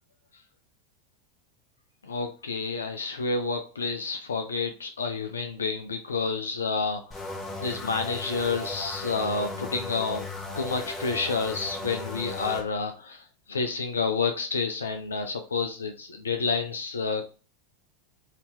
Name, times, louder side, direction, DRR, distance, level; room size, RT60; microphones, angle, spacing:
voice 1, 2.0-7.2 7.6-10.3 10.6-17.3, left 4 dB, 85° left, 6 dB, 0.4 m, -29 dB
sound 1, 7.1-12.6, left 2 dB, 20° left, 1.0 m, -36 dB
2.8 x 2.8 x 3.4 m, 0.35 s
hypercardioid pair, 95°, 0 cm